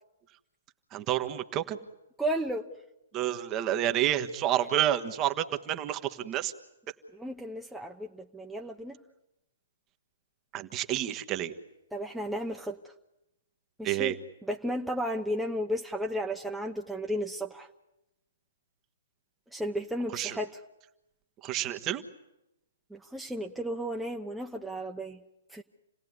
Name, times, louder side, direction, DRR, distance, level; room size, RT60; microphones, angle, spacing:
voice 1, 0.9-1.8 3.1-6.5 10.5-11.5 13.8-14.1 20.1-20.4 21.4-22.0, right 12 dB, 25° right, 8 dB, 1.5 m, -29 dB
voice 2, 2.2-2.7 7.1-9.0 11.9-12.8 13.8-14.2 14.4-17.7 19.5-20.6 22.9-25.2 25.5-25.6, equal, 5° right, 1 dB, 1.0 m, -33 dB
28.5 x 17.5 x 9.6 m, 0.92 s
figure-of-eight pair, 125°, 0 cm